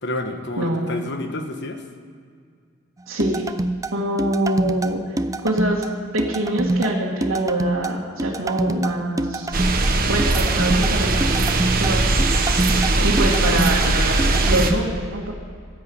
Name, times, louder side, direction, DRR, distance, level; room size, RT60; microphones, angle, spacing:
voice 1, 0.0-1.8 12.9-13.7, left 2 dB, 55° left, 6 dB, 1.3 m, -29 dB
voice 2, 0.6-0.9 3.1-3.4 3.9-5.2 5.4-5.8 6.1-9.5 10.1-12.1 13.0-15.3, right 1 dB, 65° right, -5 dB, 2.0 m, -25 dB
sound 1, 3.2-14.8, right 1 dB, 15° right, 0.4 m, -26 dB
sound 2, 9.5-14.7, right 2 dB, 45° right, 1.2 m, -20 dB
13.0 x 10.5 x 7.9 m, 2.1 s
head